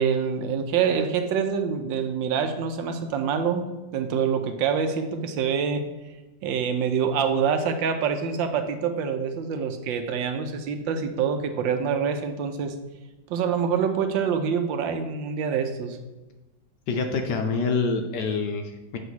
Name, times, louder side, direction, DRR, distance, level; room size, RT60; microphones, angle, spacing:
voice 1, 0.0-3.6 3.9-5.9 6.4-12.7 13.3-16.0, right 6 dB, 75° right, 7 dB, 1.3 m, -26 dB
voice 2, 16.9-19.0, left 4 dB, 70° left, 4 dB, 1.1 m, -26 dB
7.6 x 3.0 x 6.0 m, 1.1 s
omnidirectional pair, 2.2 m